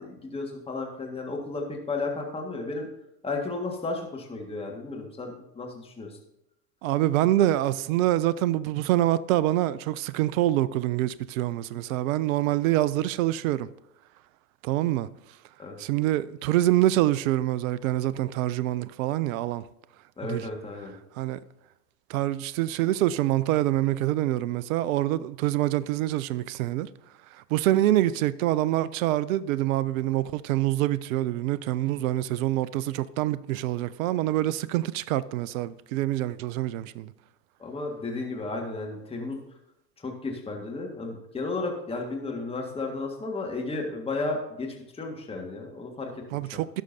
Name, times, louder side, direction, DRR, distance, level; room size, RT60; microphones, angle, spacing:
voice 1, 0.0-2.9 3.2-6.2 15.6-15.8 20.2-20.9 37.6-39.4 40.0-46.6, left 3 dB, 10° left, 1.7 m, -33 dB
voice 2, 6.8-13.7 14.6-15.1 15.8-19.6 20.3-20.5 21.2-21.4 22.1-26.9 27.5-37.1 46.3-46.8, right 14 dB, 60° right, 0.5 m, -25 dB
17.0 x 6.4 x 2.7 m
hypercardioid pair, 90°, 48 cm